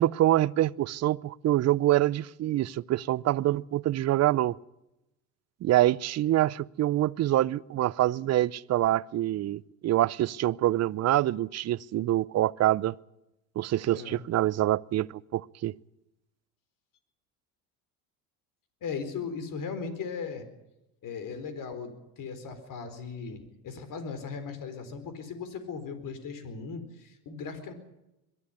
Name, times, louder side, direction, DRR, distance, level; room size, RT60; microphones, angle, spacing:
voice 1, 0.0-4.6 5.6-12.9 13.6-15.7, right 14 dB, 40° right, 0.7 m, -25 dB
voice 2, 13.9-14.2 18.8-20.4 21.0-27.7, left 5 dB, 50° left, 4.5 m, -38 dB
22.5 x 13.5 x 9.9 m
supercardioid pair, 90°, 42 cm